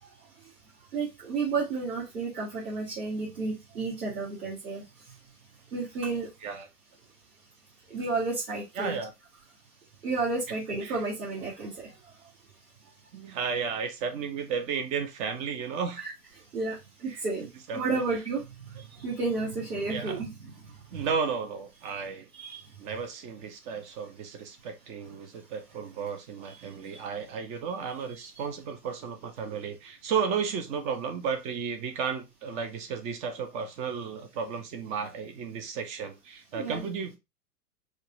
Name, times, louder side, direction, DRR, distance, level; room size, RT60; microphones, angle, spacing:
voice 1, 0.9-4.8 5.7-6.3 7.9-8.9 10.0-11.7 16.0-16.1 16.5-16.8 17.0-17.5 17.7-18.4 19.0-20.5 22.3-22.6 26.5-26.6 36.5-36.8, right 3 dB, 75° right, 2.1 m, -31 dB
voice 2, 8.8-9.1 10.8-11.0 13.1-16.0 17.1-17.2 17.7-18.1 19.9-20.2 20.9-22.3 22.8-37.1, right 6 dB, 15° right, 0.4 m, -33 dB
5.1 x 2.2 x 3.7 m
figure-of-eight pair, 100°, 47 cm